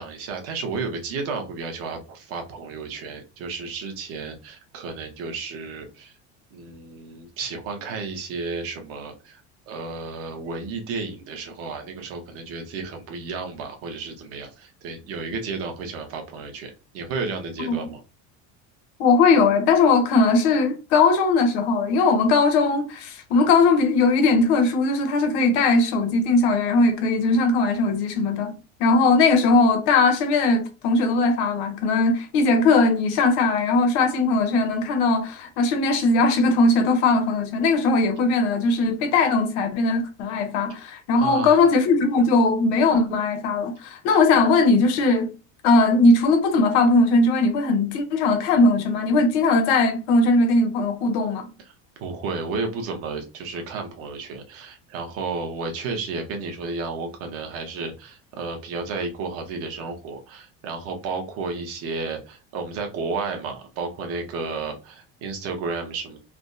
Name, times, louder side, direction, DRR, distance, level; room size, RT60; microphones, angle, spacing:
voice 1, 0.0-6.1 6.5-18.0 41.2-41.6 51.6-51.7 52.0-66.2, right 4 dB, 40° right, 0.8 m, -32 dB
voice 2, 19.0-45.3 45.6-51.5, left 3 dB, 75° left, 0.9 m, -19 dB
3.4 x 2.1 x 2.6 m
cardioid pair, 170°, 34 cm